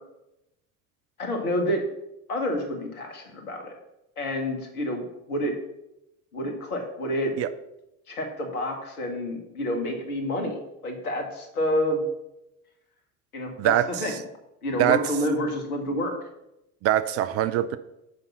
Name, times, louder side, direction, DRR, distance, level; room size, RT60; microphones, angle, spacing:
voice 1, 1.2-1.8 2.3-3.7 4.2-5.5 6.3-7.3 8.1-12.0 13.3-14.1 14.6-16.2, left 1 dB, 75° left, 3 dB, 1.7 m, -28 dB
voice 2, 13.6-14.2 14.8-15.0 16.8-17.8, right 12 dB, 35° right, 13 dB, 0.4 m, -23 dB
6.8 x 5.3 x 5.8 m, 0.89 s
figure-of-eight pair, 60°, 44 cm